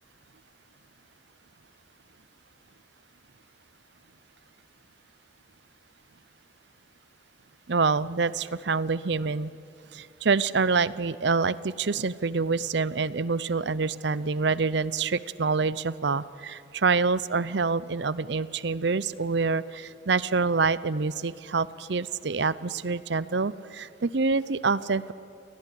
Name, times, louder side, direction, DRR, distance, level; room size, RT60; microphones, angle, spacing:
voice 1, 7.7-9.5 9.9-25.1, right 4 dB, 60° right, 18 dB, 0.6 m, -26 dB
28.0 x 18.0 x 10.0 m, 2.6 s
head